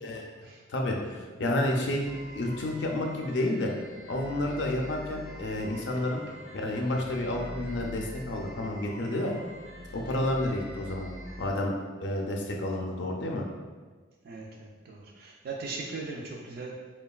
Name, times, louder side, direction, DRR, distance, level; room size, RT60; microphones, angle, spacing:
voice 1, 0.7-3.7 4.1-6.2 6.5-9.3 9.9-11.1 11.4-11.7 12.0-13.5, left 1 dB, 65° left, 1 dB, 0.4 m, -30 dB
sound 1, 2.0-11.5, equal, 5° right, 0.5 m, -44 dB
voice 2, 14.2-16.9, right 3 dB, 50° right, -1 dB, 0.3 m, -39 dB
3.0 x 2.2 x 2.3 m, 1.4 s
head